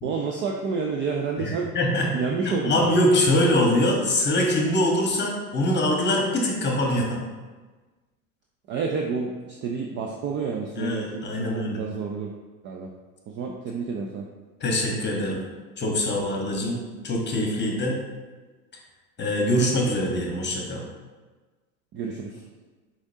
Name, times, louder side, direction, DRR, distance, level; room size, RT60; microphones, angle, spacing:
voice 1, 0.0-1.7 2.1-2.9 8.7-12.3 12.6-12.9 13.3-14.2 21.9-22.4, right 5 dB, 30° right, 0 dB, 0.3 m, -29 dB
voice 2, 1.4-2.2 2.4-7.2 10.8-11.8 14.6-15.4 15.8-16.8 17.0-18.0 19.2-20.8, left 1 dB, 25° left, 0 dB, 1.1 m, -23 dB
5.1 x 3.7 x 2.7 m, 1.3 s
hypercardioid pair, 80°, 45 cm